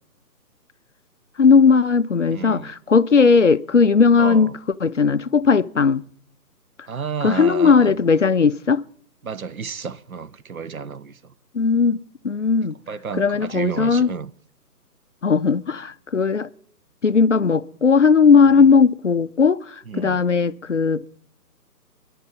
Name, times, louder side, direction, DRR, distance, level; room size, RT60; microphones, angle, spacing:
voice 1, 1.4-6.0 7.2-8.8 11.5-12.7 13.1-14.1 15.2-16.5 17.0-21.0, left 5 dB, 50° left, 0.5 m, -17 dB
voice 2, 2.3-2.7 4.2-4.5 6.9-7.9 9.2-11.1 12.9-14.3 19.9-20.2, right 6 dB, 55° right, 0.9 m, -31 dB
28.5 x 11.0 x 4.1 m
hypercardioid pair, 165°, 50 cm